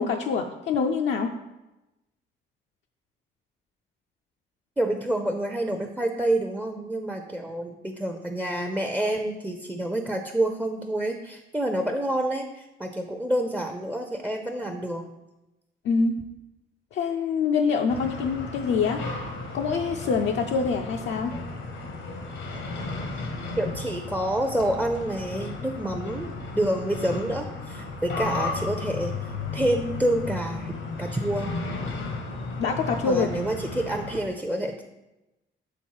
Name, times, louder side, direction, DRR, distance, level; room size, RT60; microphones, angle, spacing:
voice 1, 0.0-1.3 15.8-16.1 16.9-19.0 19.5-21.3 32.6-33.3, left 5 dB, 65° left, 2 dB, 0.5 m, -25 dB
voice 2, 4.8-15.0 23.6-26.3 26.6-31.5 33.0-34.8, right 1 dB, 5° right, 4 dB, 0.5 m, -28 dB
sound 1, 17.9-34.2, left 3 dB, 85° left, 1.1 m, -34 dB
7.2 x 3.4 x 4.6 m, 0.98 s
cardioid pair, 90°, 20 cm